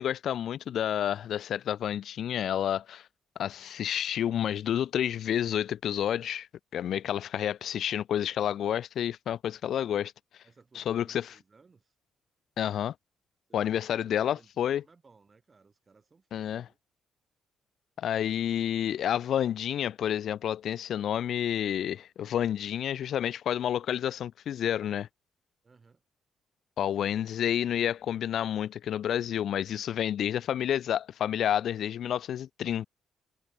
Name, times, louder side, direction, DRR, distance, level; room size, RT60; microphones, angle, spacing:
voice 1, 0.0-3.1 3.4-6.5 6.7-10.1 10.8-11.3 12.6-12.9 13.5-14.8 16.3-16.7 18.0-25.1 26.8-32.9, left 10 dB, 70° left, 0.3 m, -29 dB
voice 2, 10.4-11.9 13.5-16.8 25.6-26.0 29.8-30.2, right 4 dB, 30° right, 4.7 m, -61 dB
cardioid pair, 90°, 0 cm